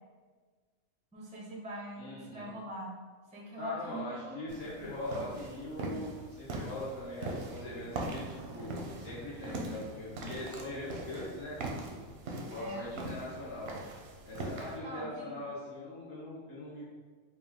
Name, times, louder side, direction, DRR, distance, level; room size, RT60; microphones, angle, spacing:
voice 1, 1.1-2.9 3.3-4.5 12.6-12.9 14.8-15.4, equal, 10° right, -4 dB, 0.3 m, -42 dB
voice 2, 2.0-2.5 3.6-12.0 12.3-13.7 14.2-16.8, left 1 dB, 55° left, -8 dB, 1.0 m, -41 dB
Motorcycle, 4.3-14.2, right 3 dB, 80° right, 1.0 m, -53 dB
sound 1, 4.5-14.8, right 2 dB, 60° right, 0.7 m, -42 dB
4.5 x 2.4 x 3.4 m, 1.5 s
omnidirectional pair, 1.5 m